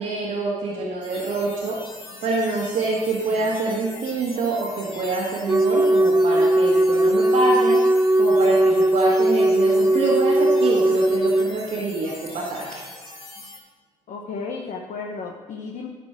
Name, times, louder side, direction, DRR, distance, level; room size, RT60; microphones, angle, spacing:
voice 1, 0.0-1.8 2.2-7.8 8.2-12.7, right 3 dB, 70° right, -6 dB, 1.9 m, -26 dB
sound 1, 1.0-13.6, left 2 dB, 35° left, 2.4 m, -42 dB
Wind instrument woodwind instrument, 5.5-11.5, right 1 dB, 15° right, 0.6 m, -18 dB
voice 2, 14.1-15.9, left 4 dB, 60° left, 1 dB, 1.0 m, -34 dB
11.5 x 4.4 x 6.1 m, 1.4 s
supercardioid pair, 70°, 14 cm